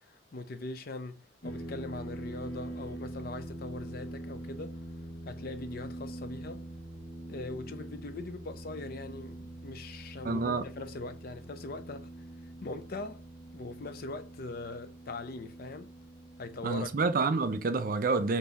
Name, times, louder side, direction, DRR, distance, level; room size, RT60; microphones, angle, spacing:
voice 1, 0.0-4.8 5.2-6.7 7.3-12.1 12.4-13.3 13.5-15.9 16.4-16.9, left 2 dB, 50° left, 0.5 m, -41 dB
sound 1, 1.4-17.0, right 1 dB, 70° left, 0.9 m, -44 dB
voice 2, 10.2-10.6 16.6-18.4, right 3 dB, 45° right, 0.4 m, -28 dB
3.5 x 2.7 x 4.0 m
head